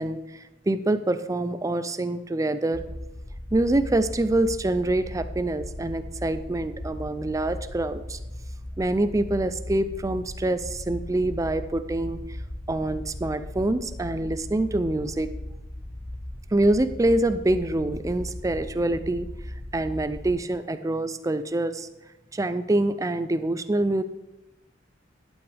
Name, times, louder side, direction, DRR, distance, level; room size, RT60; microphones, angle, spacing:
voice 1, 0.0-2.8 3.5-8.2 8.8-12.2 12.7-15.3 16.5-19.3 19.7-21.9 22.3-24.0, right 2 dB, 15° right, 11 dB, 0.4 m, -25 dB
sound 1, 2.7-20.3, left 1 dB, 30° left, 4.0 m, -38 dB
11.5 x 8.7 x 3.4 m, 0.96 s
head